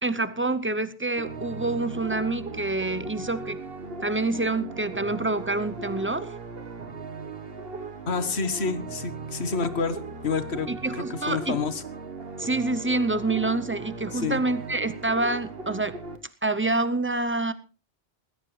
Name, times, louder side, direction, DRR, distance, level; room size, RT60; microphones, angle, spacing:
voice 1, 0.0-3.6 4.0-6.3 10.7-11.6 12.4-16.0 16.4-17.5, right 2 dB, 15° right, 13 dB, 0.6 m, -27 dB
sound 1, 1.2-16.2, right 3 dB, 55° right, 1.5 m, -38 dB
voice 2, 8.1-10.0 10.2-11.8 14.1-14.4, left 5 dB, 65° left, 12 dB, 1.5 m, -28 dB
19.5 x 15.0 x 3.3 m, 0.35 s
omnidirectional pair, 1.2 m